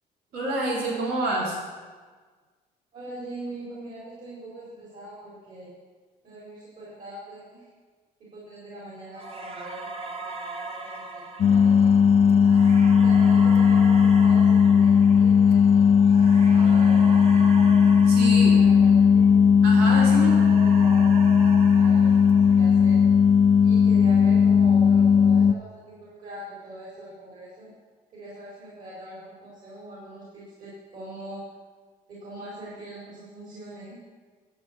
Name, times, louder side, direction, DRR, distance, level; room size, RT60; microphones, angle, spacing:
voice 1, 0.3-1.6 18.0-18.6 19.6-20.3, right 2 dB, 70° right, -4 dB, 3.4 m, -27 dB
voice 2, 2.9-5.7 6.2-7.7 8.3-12.4 12.9-17.5 18.4-19.5 20.2-21.1 21.7-23.0 23.6-27.7 28.1-31.5 32.1-34.0, right 1 dB, 55° right, -7 dB, 4.4 m, -42 dB
sound 1, 9.2-19.4 19.7-23.1, right 3 dB, 35° right, 1.3 m, -39 dB
sound 2, 11.4-25.5, left 6 dB, 35° left, 0.4 m, -17 dB
11.5 x 8.0 x 6.5 m, 1.4 s
cardioid pair, 110°, 17 cm